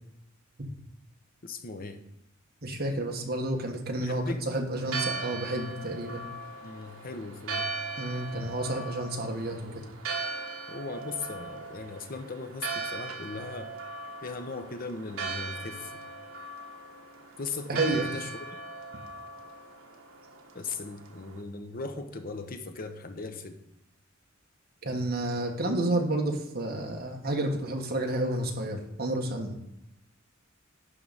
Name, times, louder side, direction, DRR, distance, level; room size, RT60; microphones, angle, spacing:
voice 1, 1.4-2.0 4.0-4.4 6.6-7.8 10.7-13.7 14.2-16.0 17.4-18.3 20.5-23.6, left 3 dB, 45° left, 7 dB, 0.9 m, -38 dB
voice 2, 2.6-6.3 8.0-9.8 17.7-18.1 24.8-29.6, right 1 dB, 50° right, 2 dB, 1.5 m, -30 dB
Church bell, 4.8-21.4, right 4 dB, 80° right, 1.3 m, -39 dB
11.5 x 3.9 x 7.2 m, 0.83 s
head